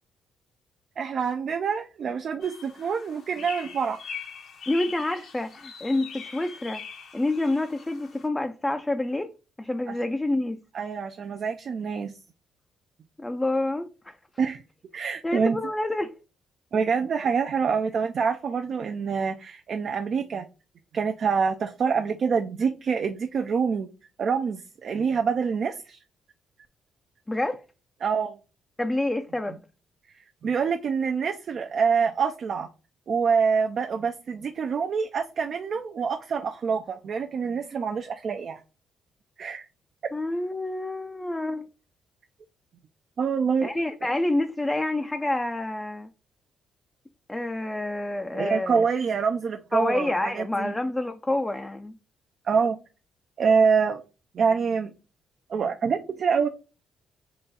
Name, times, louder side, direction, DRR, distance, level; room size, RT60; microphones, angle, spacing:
voice 1, 1.0-4.0 9.9-10.0 10.7-12.1 14.4-14.6 14.9-15.6 16.7-20.4 20.9-23.9 24.2-26.0 28.0-28.4 30.4-32.7 33.1-38.6 39.4-39.6 43.2-43.7 48.3-50.7 52.5-52.8 53.4-54.0 54.3-54.9 55.5-56.5, right 6 dB, 55° right, 0.4 m, -26 dB
sound 1, 2.4-8.3, left 6 dB, 65° left, 0.8 m, -42 dB
voice 2, 4.7-6.8 7.1-9.3 9.6-10.6 13.2-14.2 15.2-16.2 27.3-27.6 28.8-29.6 40.1-41.7 43.6-46.1 47.3-48.9 49.7-52.0, left 2 dB, 15° left, 0.4 m, -28 dB
3.9 x 2.4 x 3.9 m
cardioid pair, 90°, 0 cm